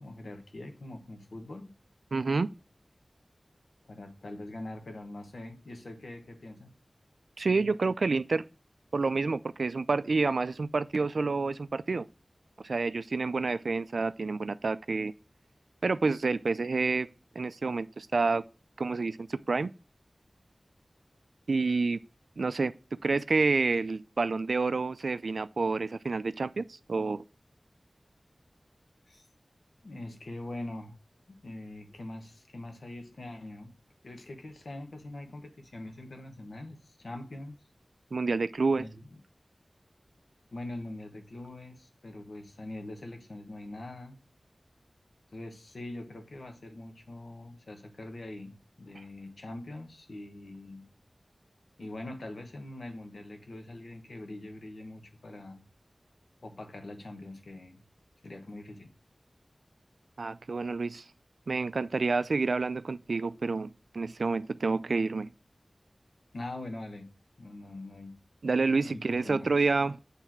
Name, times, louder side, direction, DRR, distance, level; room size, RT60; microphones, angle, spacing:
voice 1, 0.0-1.7 3.8-6.7 29.1-29.2 29.8-31.0 31.3-33.7 34.0-37.6 38.7-39.2 40.5-44.2 45.3-50.9 51.8-55.6 56.4-57.8 58.2-58.9 66.3-67.1 67.4-68.2 68.9-69.5, left 1 dB, 80° left, 1.2 m, -43 dB
voice 2, 2.1-2.5 7.4-8.4 8.9-12.0 12.6-15.1 15.8-17.1 17.4-18.4 18.8-19.7 21.5-22.0 22.4-22.7 23.0-27.2 38.1-38.9 60.2-61.0 61.5-65.3 68.4-70.0, right 3 dB, 85° right, 0.4 m, -28 dB
8.2 x 3.3 x 6.0 m
wide cardioid pair, 75°, 0 cm